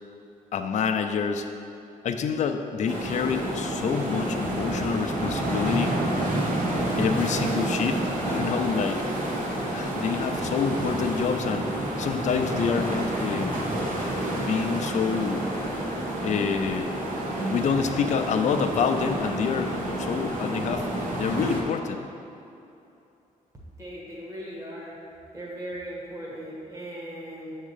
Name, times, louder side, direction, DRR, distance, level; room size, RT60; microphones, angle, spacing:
voice 1, 0.5-1.5 2.0-6.0 7.0-8.0 8.3-9.0 9.7-13.6 14.4-15.5 16.2-16.9 17.5-20.8 21.2-22.1, left 6 dB, 55° left, 6 dB, 0.5 m, -27 dB
sound 1, 2.9-21.6, right 1 dB, 65° right, 1.4 m, -29 dB
voice 2, 23.8-25.0 25.3-27.6, right 1 dB, 20° right, -5 dB, 1.4 m, -38 dB
8.0 x 3.6 x 6.6 m, 2.7 s
wide cardioid pair, 145°, 15 cm